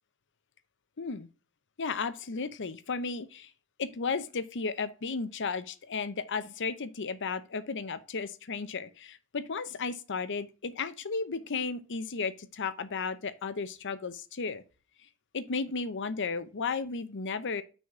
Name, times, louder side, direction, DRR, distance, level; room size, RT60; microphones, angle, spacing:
voice 1, 1.0-1.3 1.8-3.5 3.8-14.6 15.3-17.6, left 4 dB, 55° left, 0.7 m, -34 dB
6.3 x 4.1 x 6.0 m
head